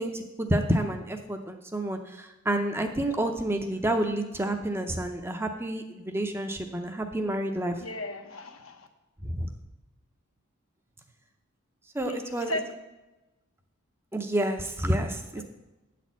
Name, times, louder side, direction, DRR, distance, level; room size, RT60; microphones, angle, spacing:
voice 1, 0.0-7.8 9.2-9.5 11.9-12.5 14.1-15.4, right 1 dB, 10° right, 5 dB, 0.5 m, -29 dB
voice 2, 7.8-8.9 12.0-12.7 15.4-15.5, left 1 dB, 75° left, 5 dB, 1.0 m, -36 dB
8.9 x 4.2 x 7.2 m, 1.0 s
head